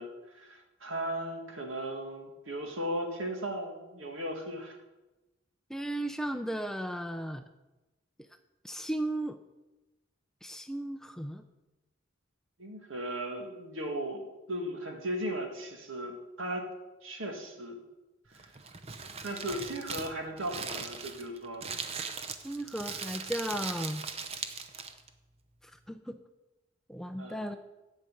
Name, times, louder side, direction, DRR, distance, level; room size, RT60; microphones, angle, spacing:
voice 1, 0.0-4.8 12.6-14.2 14.5-16.7 17.0-17.8 18.3-18.5 19.2-21.6 27.2-27.4, right 1 dB, 70° right, 3 dB, 1.9 m, -37 dB
voice 2, 5.7-7.4 8.6-9.4 10.4-11.4 22.4-24.0 25.6-26.2 26.9-27.6, right 1 dB, ahead, 8 dB, 0.4 m, -35 dB
Crumpling crinkling, 18.3-25.1, right 5 dB, 30° right, 0.6 m, -39 dB
11.0 x 5.4 x 8.3 m, 1.1 s
head